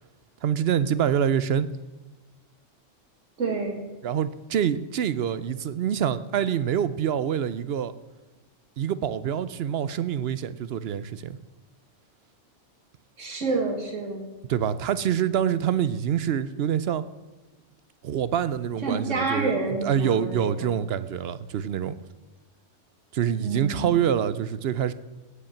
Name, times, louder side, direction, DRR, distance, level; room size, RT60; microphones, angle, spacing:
voice 1, 0.4-1.7 4.0-7.9 8.8-11.4 14.5-17.0 18.0-19.5 19.8-22.0 23.1-24.9, right 9 dB, 65° right, 0.8 m, -26 dB
voice 2, 3.4-3.8 13.2-14.3 18.8-20.8 23.4-23.9, right 3 dB, 85° right, 2.2 m, -28 dB
16.0 x 5.4 x 7.1 m
omnidirectional pair, 1.3 m